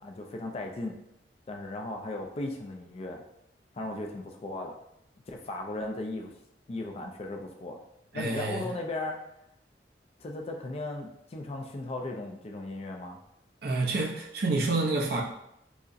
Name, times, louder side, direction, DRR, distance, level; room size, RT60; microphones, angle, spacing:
voice 1, 0.0-1.0 1.5-3.2 3.7-4.7 5.3-6.3 6.7-7.8 8.1-9.2 10.2-13.2, left 2 dB, 35° left, 2 dB, 0.4 m, -36 dB
voice 2, 8.1-8.7 13.6-15.2, right 3 dB, 60° right, -1 dB, 0.6 m, -28 dB
4.7 x 2.0 x 2.6 m, 0.79 s
head